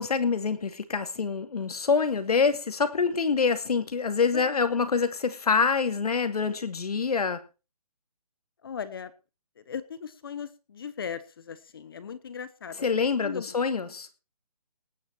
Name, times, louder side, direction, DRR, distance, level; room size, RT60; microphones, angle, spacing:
voice 1, 0.0-7.4 12.8-14.1, left 5 dB, 70° left, 11 dB, 2.5 m, -26 dB
voice 2, 8.6-9.1 9.6-12.8 13.2-13.6, left 7 dB, 35° left, 15 dB, 1.1 m, -38 dB
19.0 x 9.4 x 4.6 m, 0.32 s
hypercardioid pair, 170°, 20 cm